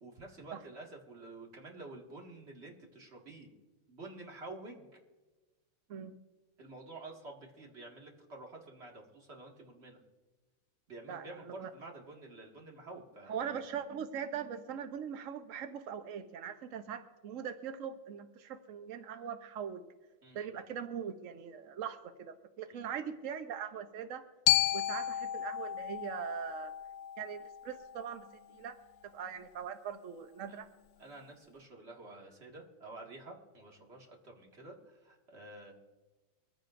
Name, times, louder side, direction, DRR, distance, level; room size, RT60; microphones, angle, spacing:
voice 1, 0.0-3.5 3.9-5.0 6.6-10.0 10.9-13.6 20.2-20.6 22.7-23.0 30.5-30.6 31.0-35.7, right 2 dB, 30° right, 0 dB, 2.0 m, -50 dB
voice 2, 11.1-11.7 13.3-19.8 20.3-24.2 24.7-26.7 27.2-28.8 29.0-30.7, right 8 dB, 85° right, 8 dB, 0.6 m, -41 dB
Glockenspiel, 24.5-28.6, left 13 dB, 75° left, 1.2 m, -33 dB
23.5 x 14.5 x 2.6 m, 1.3 s
omnidirectional pair, 2.3 m